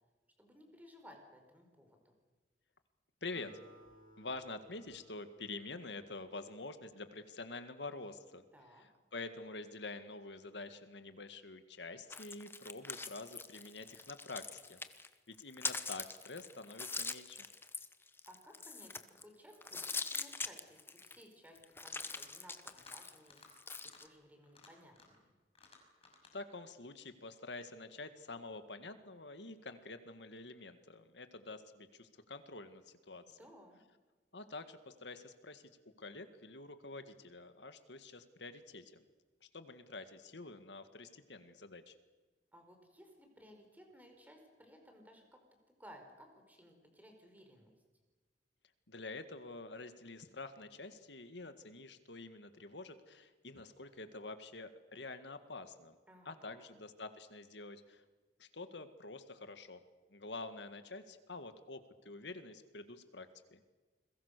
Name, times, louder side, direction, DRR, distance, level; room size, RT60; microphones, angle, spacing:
voice 1, 0.4-2.1 8.5-8.8 18.2-23.4 23.8-25.2 33.3-33.8 42.5-45.4 45.7-47.7 56.1-56.8, equal, 10° right, 4 dB, 5.1 m, -59 dB
voice 2, 3.2-3.5 4.2-8.5 9.1-14.8 15.3-17.5 26.3-33.4 34.3-35.6 36.0-38.9 39.4-41.9 48.9-56.0 56.3-58.0 58.4-59.8 60.1-63.6, left 3 dB, 80° left, 9 dB, 1.9 m, -47 dB
Acoustic guitar, 3.3-6.9, right 1 dB, 90° right, 7.0 m, -63 dB
sound 1, 12.1-15.1 15.3-19.2 19.6-21.2 21.6-24.1, left 4 dB, 15° left, 1.1 m, -43 dB
sound 2, 21.9-22.3 22.6-23.0 23.2-23.5 23.8-24.0 24.4-25.2 25.6-26.3, left 4 dB, 35° left, 5.8 m, -60 dB
29.5 x 22.0 x 6.8 m, 1.3 s
head